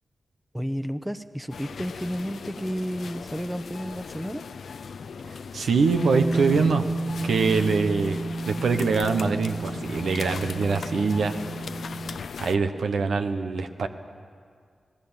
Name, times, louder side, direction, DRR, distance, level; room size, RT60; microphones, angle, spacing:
voice 1, 0.5-4.4, equal, 5° right, 11 dB, 0.9 m, -32 dB
sound 1, 1.5-12.6, left 5 dB, 80° left, 0.6 m, -38 dB
voice 2, 5.5-6.9 7.2-8.2 8.5-11.4 12.4-13.9, right 4 dB, 85° right, 6 dB, 1.1 m, -24 dB
Bass guitar, 5.9-12.2, right 2 dB, 35° right, 0.8 m, -32 dB
19.0 x 17.5 x 8.9 m, 2.1 s
cardioid pair, 50°, 0 cm